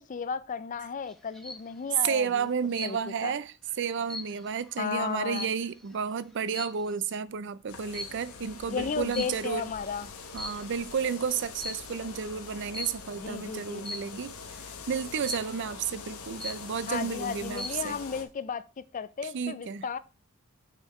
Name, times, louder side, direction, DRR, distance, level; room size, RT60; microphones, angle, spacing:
voice 1, 0.0-2.5 2.8-3.0 3.2-3.3 4.8-5.5 8.7-10.1 13.2-13.9 16.9-20.0, left 6 dB, 35° left, 0.4 m, -34 dB
sound 1, 1.1-1.7 2.7-3.3 3.7-5.9 6.5-6.9 7.9-8.3 9.1-9.7 10.2-10.9 11.6-12.0 12.7-13.1 13.8-14.3 15.2-15.7 16.1-16.2 16.4-17.0 17.4-17.9, left 2 dB, ahead, 0.8 m, -40 dB
voice 2, 2.0-9.7 10.3-18.0 19.2-19.9, right 6 dB, 55° right, 0.4 m, -32 dB
sound 2, 7.7-18.2, left 5 dB, 85° left, 1.1 m, -44 dB
6.6 x 6.4 x 3.1 m
head